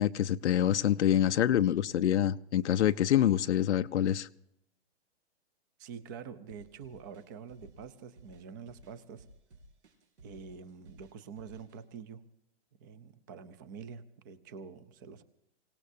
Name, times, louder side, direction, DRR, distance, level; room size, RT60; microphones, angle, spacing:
voice 1, 0.0-4.3, left 10 dB, 85° left, 10 dB, 0.6 m, -26 dB
voice 2, 5.8-9.3 10.2-12.2 12.8-15.2, right 6 dB, 20° right, 15 dB, 0.6 m, -46 dB
sound 1, 6.5-11.8, right 1 dB, 80° right, 4.9 m, -57 dB
25.0 x 18.0 x 2.7 m, 0.80 s
hypercardioid pair, 165°, 34 cm